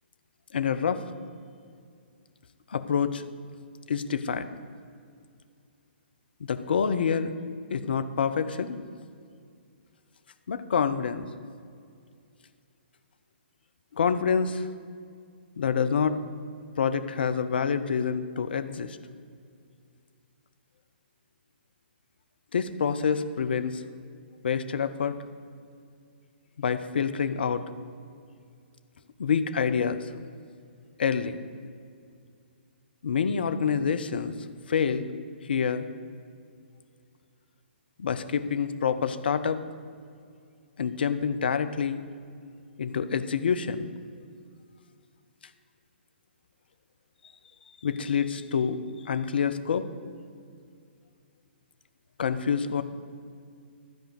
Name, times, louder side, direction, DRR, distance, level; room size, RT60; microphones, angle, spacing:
voice 1, 0.5-1.0 2.7-3.2 3.9-4.6 6.5-7.3 7.7-8.8 10.5-11.2 13.9-14.7 15.6-16.2 16.8-19.0 22.5-23.8 24.4-25.2 26.6-27.6 29.2-30.1 31.0-31.4 33.0-34.3 34.7-35.1 35.4-35.9 38.0-39.6 40.8-42.0 42.8-43.9 47.8-49.9 52.2-52.8, left 6 dB, 60° left, 11 dB, 0.6 m, -27 dB
13.0 x 5.0 x 7.9 m, 2.3 s
figure-of-eight pair, 125°, 6 cm